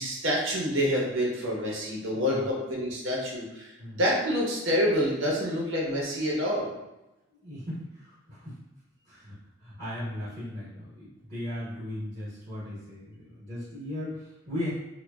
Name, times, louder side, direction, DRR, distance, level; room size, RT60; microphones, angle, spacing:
voice 1, 0.0-3.7 3.9-6.7, equal, 65° right, -3 dB, 0.8 m, -27 dB
voice 2, 2.1-2.5 3.8-4.0 7.3-8.6 9.0-14.7, left 1 dB, 35° right, -10 dB, 1.0 m, -37 dB
3.1 x 2.2 x 2.3 m, 0.98 s
head